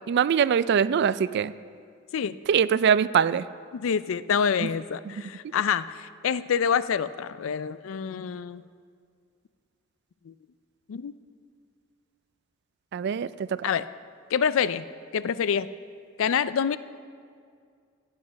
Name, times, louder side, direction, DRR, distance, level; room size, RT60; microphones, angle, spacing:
voice 1, 0.1-1.5 2.5-3.4 4.6-4.7 5.1-5.2 12.9-13.6, right 7 dB, 55° right, 16 dB, 0.3 m, -23 dB
voice 2, 3.7-8.6 10.3-10.4 10.9-11.1 13.6-13.9 14.3-14.9 15.1-15.7 16.2-16.8, left 7 dB, 70° left, 16 dB, 0.4 m, -26 dB
15.0 x 7.6 x 5.8 m, 2.2 s
head